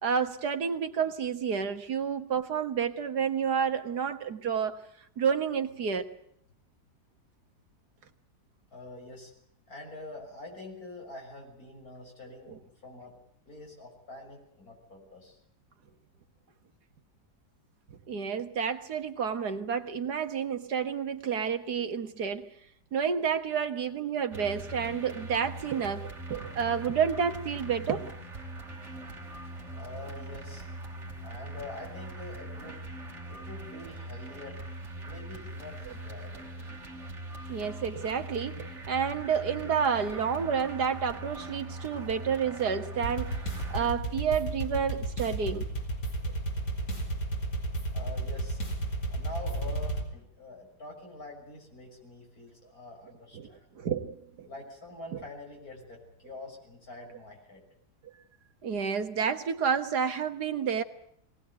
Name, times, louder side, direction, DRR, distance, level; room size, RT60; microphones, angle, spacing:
voice 1, 0.0-4.8 5.2-6.1 12.5-12.6 18.1-22.5 22.9-28.2 37.5-43.4 43.7-45.7 53.3-54.5 58.6-60.8, right 7 dB, 75° right, 8 dB, 2.0 m, -30 dB
voice 2, 8.7-9.3 9.7-13.2 13.5-15.4 25.7-25.8 29.7-30.7 31.2-32.9 33.3-34.6 35.0-36.5 47.9-48.6 49.1-53.6 54.4-57.6, left 2 dB, 60° left, 1 dB, 6.8 m, -45 dB
sound 1, 24.3-43.9, right 1 dB, 45° right, 3.1 m, -42 dB
sound 2, 43.0-50.0, right 2 dB, 80° left, 4.7 m, -33 dB
22.5 x 18.5 x 9.2 m, 0.68 s
omnidirectional pair, 1.8 m